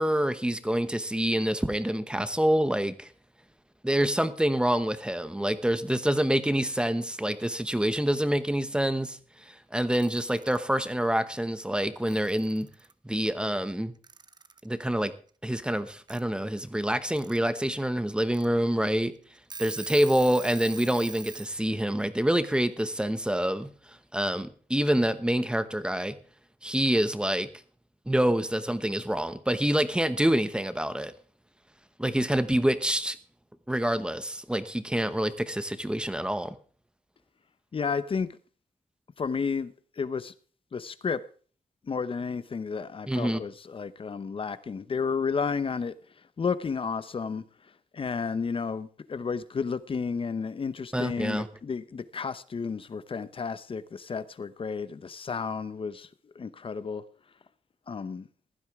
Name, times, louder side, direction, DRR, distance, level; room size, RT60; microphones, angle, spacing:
voice 1, 0.0-3.1 3.8-9.2 9.5-12.7 13.0-13.9 14.6-15.1 15.4-19.1 19.6-23.7 24.1-26.2 26.6-27.5 28.1-31.1 32.0-33.2 33.7-36.6 43.1-43.4 50.9-51.5, right 1 dB, 5° right, 0.9 m, -26 dB
Alarm / Clock, 9.8-10.6 11.8-11.9 12.1-12.9 14.0-14.7 16.1-16.2 16.9-17.4 17.8-17.9 18.3-18.4 19.0-19.1 19.3-21.5, right 4 dB, 30° right, 0.6 m, -43 dB
voice 2, 37.7-38.3 39.2-40.3 40.7-41.2 41.9-45.9 46.4-47.4 47.9-56.1 56.4-57.0 57.9-58.3, left 5 dB, 40° left, 0.8 m, -32 dB
15.5 x 11.5 x 3.6 m
wide cardioid pair, 120°, 14 cm